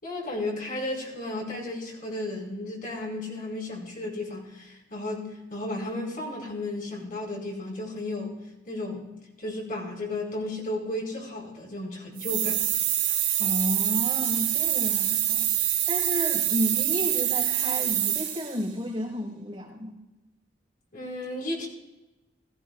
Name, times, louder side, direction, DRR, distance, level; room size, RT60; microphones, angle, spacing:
voice 1, 0.0-8.4 8.6-9.1 9.4-12.6 20.9-21.7, left 2 dB, 50° left, -2 dB, 4.7 m, -34 dB
sound 1, 12.2-18.6, right 12 dB, 50° right, 3.7 m, -26 dB
voice 2, 13.4-15.5 15.9-20.0, equal, 25° right, -3 dB, 4.7 m, -32 dB
21.0 x 15.0 x 2.4 m, 1.0 s
head